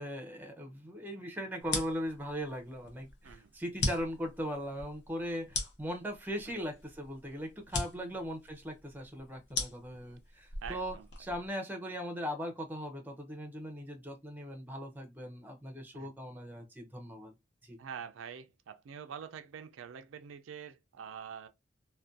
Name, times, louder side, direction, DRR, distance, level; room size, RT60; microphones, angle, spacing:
voice 1, 0.0-17.3 17.6-17.8, equal, 10° right, 0.5 m, -39 dB
sound 1, 1.6-11.5, left 3 dB, 60° left, 0.7 m, -40 dB
voice 2, 10.6-11.1 15.9-16.1 17.8-21.5, right 7 dB, 85° right, 0.4 m, -46 dB
2.4 x 2.2 x 2.5 m
head